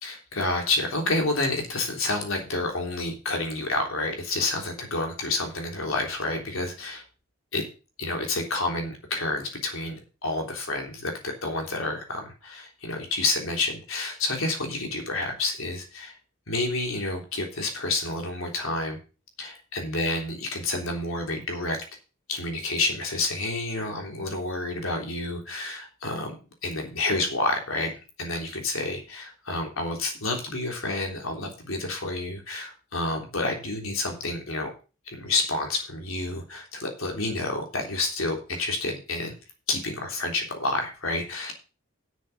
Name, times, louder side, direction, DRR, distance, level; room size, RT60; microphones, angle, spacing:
voice 1, 0.0-7.0 7.5-7.6 8.0-16.2 16.5-19.0 19.4-21.8 22.3-26.3 26.6-27.9 28.2-34.7 35.1-39.3 39.7-41.5, left 2 dB, 70° left, 2 dB, 3.5 m, -29 dB
10.5 x 7.6 x 5.9 m, 0.33 s
head